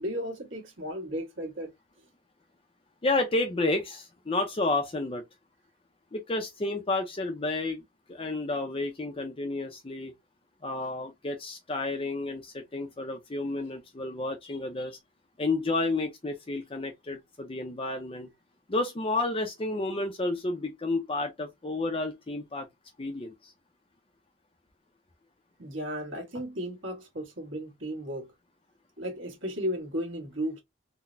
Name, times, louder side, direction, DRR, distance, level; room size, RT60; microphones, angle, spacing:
voice 1, 0.0-1.7 25.6-28.3 29.0-30.6, equal, 60° right, 1.4 m, -34 dB
voice 2, 3.0-5.2 6.1-7.8 8.1-10.1 10.6-15.0 15.4-18.3 18.7-22.7 23.0-23.5, left 2 dB, 25° left, 0.5 m, -31 dB
3.9 x 2.1 x 2.5 m
head